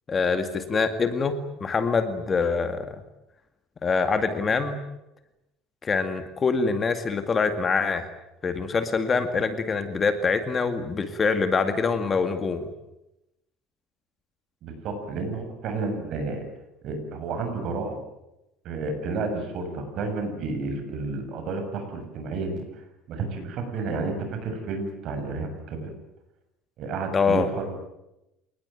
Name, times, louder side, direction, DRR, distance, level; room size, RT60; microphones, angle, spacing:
voice 1, 0.1-3.0 3.8-4.8 5.8-8.1 8.4-12.7 27.1-27.5, left 4 dB, 25° left, 8 dB, 2.1 m, -25 dB
voice 2, 14.6-16.4 16.8-18.0 18.6-22.6 23.1-25.9 26.8-27.7, right 3 dB, 50° right, 6 dB, 7.9 m, -31 dB
28.0 x 19.5 x 9.3 m, 0.91 s
cardioid pair, 145°, 0 cm